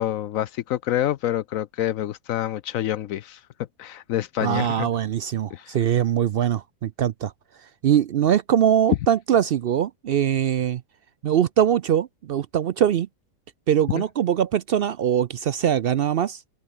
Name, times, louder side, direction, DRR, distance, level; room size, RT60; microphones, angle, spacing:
voice 1, 0.0-3.4 3.8-4.9 5.5-5.8 13.9-14.0, left 12 dB, 70° left, 1.0 m, -27 dB
voice 2, 4.4-7.3 7.8-10.8 11.2-13.1 13.7-16.4, right 9 dB, 70° right, 0.5 m, -22 dB
open air
omnidirectional pair, 1.5 m